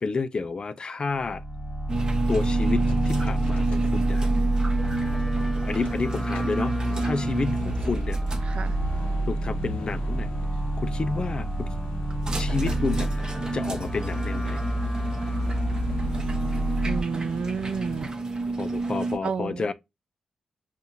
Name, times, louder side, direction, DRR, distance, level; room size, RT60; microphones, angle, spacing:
voice 1, 0.0-1.4 2.3-4.3 5.6-8.2 9.3-10.3 10.8-11.7 12.4-13.1 13.5-14.7 18.6-19.7, left 4 dB, 50° left, 0.5 m, -30 dB
sound 1, 1.1-17.0, right 1 dB, 15° left, 1.6 m, -28 dB
sound 2, 1.9-19.2, right 3 dB, 35° right, 0.9 m, -32 dB
sound 3, 2.9-4.5 5.0-5.1 5.6-5.9 6.2-18.0, left 1 dB, 90° left, 0.7 m, -40 dB
voice 2, 8.4-8.8 16.8-18.1 19.2-19.7, right 5 dB, 60° right, 0.4 m, -31 dB
5.5 x 2.5 x 2.7 m
supercardioid pair, 45°, 2 cm